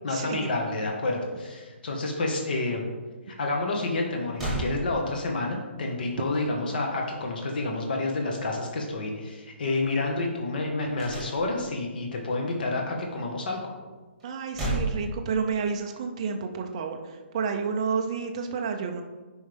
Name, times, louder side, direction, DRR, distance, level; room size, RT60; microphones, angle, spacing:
voice 1, 0.0-2.9 3.4-13.6, left 2 dB, 45° left, 1 dB, 1.6 m, -29 dB
sound 1, 3.9-4.0 4.3-5.5 11.0-11.8 14.2-15.8, right 2 dB, ahead, 1.9 m, -32 dB
voice 2, 14.2-19.0, right 5 dB, 25° right, 4 dB, 0.6 m, -30 dB
10.0 x 5.3 x 3.5 m, 1.3 s
hypercardioid pair, 175°, 7 cm